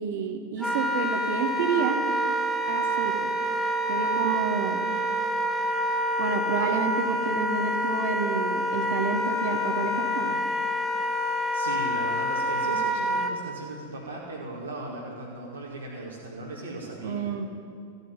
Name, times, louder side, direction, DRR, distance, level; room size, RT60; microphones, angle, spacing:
voice 1, 0.0-2.0 2.7-3.3 3.9-4.8 6.2-10.4 17.0-17.5, right 6 dB, 55° right, 6 dB, 1.5 m, -29 dB
Wind instrument woodwind instrument, 0.6-13.3, equal, 5° left, 1.5 m, -27 dB
voice 2, 11.5-17.3, right 2 dB, 80° right, -6 dB, 2.3 m, -37 dB
14.5 x 9.3 x 8.9 m, 2.5 s
figure-of-eight pair, 90°, 0 cm